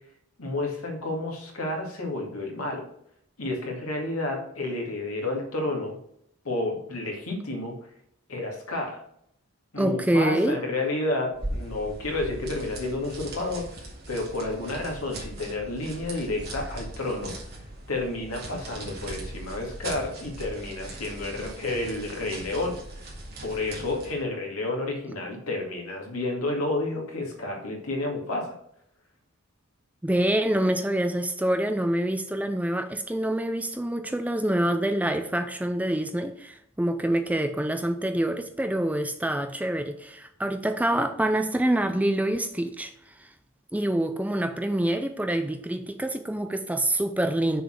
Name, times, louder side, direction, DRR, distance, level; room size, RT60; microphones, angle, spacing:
voice 1, 0.4-2.9 3.4-6.0 6.4-7.8 8.3-9.0 9.7-13.7 14.1-17.3 17.9-22.8 23.4-28.6, left 2 dB, 75° left, 1 dB, 2.1 m, -30 dB
voice 2, 9.8-10.6 30.0-43.3 43.7-47.6, right 1 dB, 5° right, 7 dB, 0.4 m, -26 dB
sound 1, 11.3-24.2, right 1 dB, 45° right, 2.3 m, -39 dB
6.8 x 4.1 x 6.4 m, 0.72 s
head